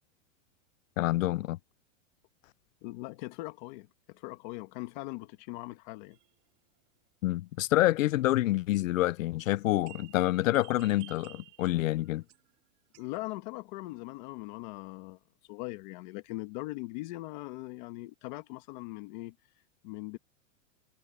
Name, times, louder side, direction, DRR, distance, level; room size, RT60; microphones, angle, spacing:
voice 1, 1.0-1.6 7.2-12.2, left 16 dB, 90° left, 0.6 m, -27 dB
voice 2, 2.8-6.2 13.0-15.2 15.5-19.4 19.8-20.2, left 20 dB, 35° left, 1.9 m, -40 dB
sound 1, 6.1-6.3 8.0-9.0 9.4-12.5 12.9-13.2, right 18 dB, 20° right, 0.5 m, -54 dB
supercardioid pair, 170°, 38 cm